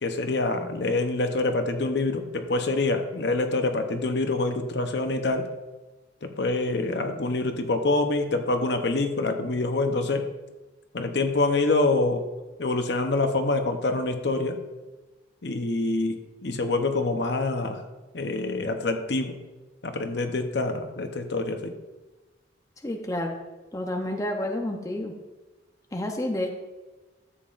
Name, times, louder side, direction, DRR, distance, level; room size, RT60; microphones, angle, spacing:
voice 1, 0.0-5.5 6.2-10.3 10.9-12.2 12.6-14.6 15.4-17.8 18.1-19.3 19.8-21.7, left 2 dB, 60° left, 6 dB, 0.8 m, -26 dB
voice 2, 22.8-23.4 23.7-25.1 25.9-26.5, left 1 dB, 15° left, 2 dB, 0.7 m, -29 dB
12.5 x 7.6 x 2.5 m, 1.2 s
head